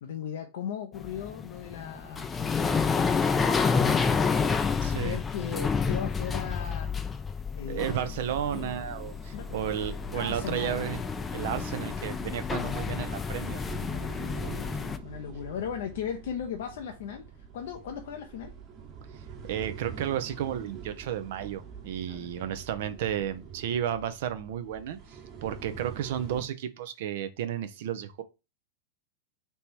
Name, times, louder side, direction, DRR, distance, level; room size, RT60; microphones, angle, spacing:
voice 1, 0.0-3.0 4.9-6.9 7.5-8.2 9.3-9.5 10.1-10.9 14.4-18.5 22.1-22.6, left 8 dB, 70° left, 0.5 m, -38 dB
sound 1, 1.0-15.0, left 5 dB, 15° left, 0.4 m, -30 dB
voice 2, 4.8-5.2 7.7-11.0 11.3-13.8 19.1-19.2 19.5-28.2, right 10 dB, 65° right, 0.6 m, -33 dB
sound 2, 8.3-26.4, right 7 dB, 35° right, 1.4 m, -45 dB
3.3 x 2.9 x 4.4 m
hypercardioid pair, 110°, 0 cm